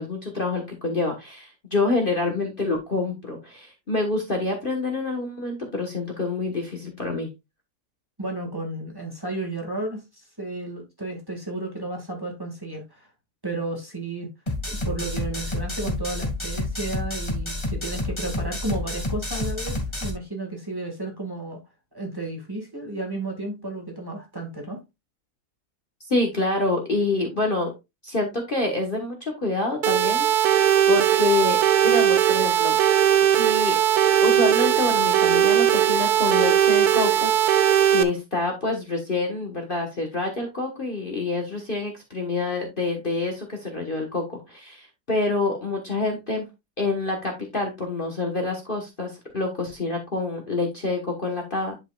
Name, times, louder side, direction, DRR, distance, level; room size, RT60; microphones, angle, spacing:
voice 1, 0.0-7.3 26.1-27.7 28.0-32.8 33.3-33.8 34.2-37.6 37.9-46.5 46.8-51.7, left 3 dB, 35° left, 1.5 m, -27 dB
voice 2, 8.2-13.1 13.4-14.3 14.7-21.6 21.9-24.8, right 2 dB, 15° right, 2.0 m, -33 dB
sound 1, 14.5-20.1, left 2 dB, 15° left, 1.7 m, -29 dB
sound 2, 29.8-38.0, right 11 dB, 75° right, 1.2 m, -19 dB
11.0 x 5.3 x 2.4 m
omnidirectional pair, 1.7 m